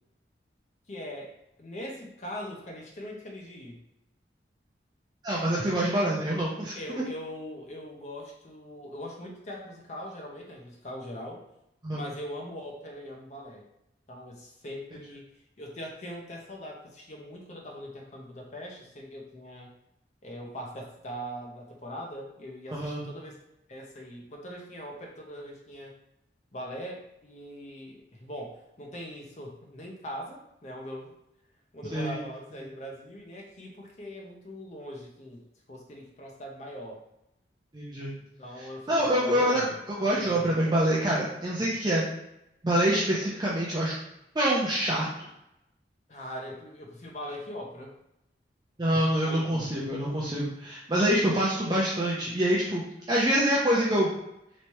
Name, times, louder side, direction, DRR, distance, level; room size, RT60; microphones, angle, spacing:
voice 1, 0.9-3.8 6.7-11.4 11.9-13.6 14.1-15.3 15.6-19.7 20.2-23.4 23.7-25.9 26.5-31.1 31.7-35.4 35.7-37.0 38.4-40.5 43.2-43.3 46.1-47.9 49.2-49.7, equal, 40° left, 0 dB, 0.7 m, -41 dB
voice 2, 5.2-7.0 11.8-12.0 22.7-23.1 31.9-32.2 37.7-38.1 38.9-39.6 40.0-42.0 42.6-43.9 44.3-45.1 48.8-52.8 53.1-54.1, right 1 dB, 25° right, -6 dB, 0.5 m, -26 dB
3.3 x 3.1 x 2.9 m, 0.84 s
head